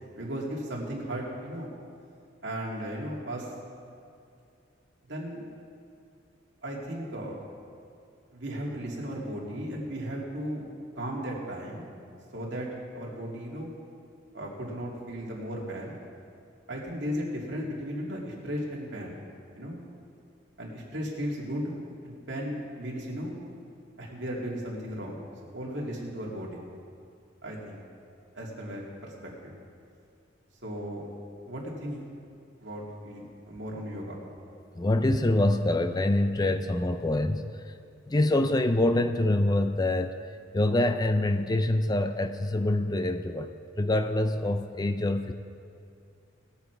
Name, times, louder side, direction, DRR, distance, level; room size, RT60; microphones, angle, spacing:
voice 1, 0.1-1.7 2.4-3.5 5.1-5.4 6.6-7.4 8.3-10.6 11.0-12.0 12.3-12.7 12.9-13.7 14.3-16.0 16.7-19.1 19.5-19.8 20.6-21.7 22.0-23.4 24.0-25.2 25.5-26.6 27.4-27.8 28.3-29.6 30.6-31.1 31.5-32.0 32.6-34.2, equal, 65° right, -3 dB, 2.6 m, -35 dB
voice 2, 34.8-37.7 38.1-40.1 40.5-43.5 43.8-45.3, left 1 dB, 20° left, 8 dB, 0.4 m, -25 dB
20.0 x 7.5 x 4.7 m, 2.5 s
head